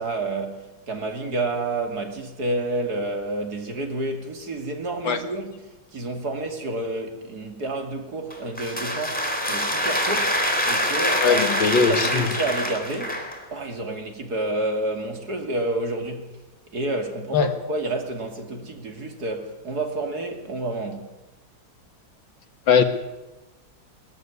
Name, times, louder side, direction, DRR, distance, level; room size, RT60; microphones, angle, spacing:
voice 1, 0.0-16.4 16.7-21.2, right 2 dB, 45° right, 3.0 m, -30 dB
sound 1, 8.3-13.4, equal, 5° left, 3.6 m, -25 dB
voice 2, 11.2-12.3 17.3-17.5 22.7-22.8, left 6 dB, 60° left, 2.2 m, -20 dB
21.0 x 13.5 x 9.7 m
omnidirectional pair, 2.4 m